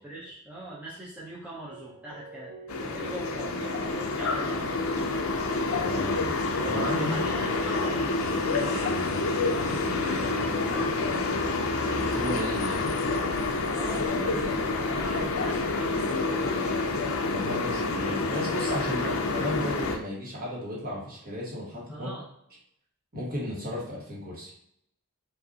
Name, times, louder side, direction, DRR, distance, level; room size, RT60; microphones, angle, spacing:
voice 1, 0.0-4.7 7.0-11.3 13.7-17.0 19.0-19.2 21.9-22.3, right 1 dB, 5° right, -8 dB, 0.7 m, -41 dB
sound 1, 1.7-11.5, right 5 dB, 75° right, 0.5 m, -46 dB
sound 2, 2.7-20.0, left 3 dB, 65° left, 0.5 m, -28 dB
voice 2, 5.7-6.3 6.6-7.2 11.9-12.9 17.3-22.1 23.1-24.5, left 1 dB, 40° right, -5 dB, 1.4 m, -34 dB
5.1 x 2.6 x 2.7 m, 0.70 s
head